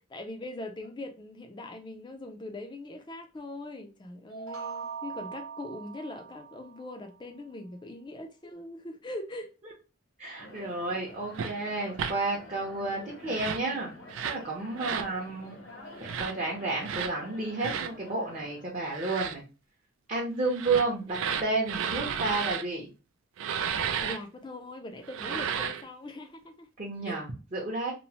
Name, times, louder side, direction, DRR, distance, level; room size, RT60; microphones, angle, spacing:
voice 1, 0.1-9.5 12.9-13.1 24.0-26.7 27.0-27.2, left 1 dB, 20° left, 0.4 m, -41 dB
sound 1, 4.3-7.1, right 6 dB, 85° right, 0.9 m, -41 dB
voice 2, 10.2-13.9 14.2-15.5 16.0-19.4 20.1-22.9 26.8-27.9, right 3 dB, 35° right, 0.6 m, -31 dB
sound 2, 10.4-18.7, left 1 dB, 60° left, 0.8 m, -48 dB
sound 3, 11.3-11.5 11.9-12.1 13.2-13.7 14.1-14.4 14.8-15.1 16.0-16.3 16.8-17.1 17.6-17.9 18.9-19.3 20.5-22.6 23.4-24.2 25.0-25.8, right 7 dB, 65° right, 0.3 m, -32 dB
3.0 x 2.0 x 2.7 m
head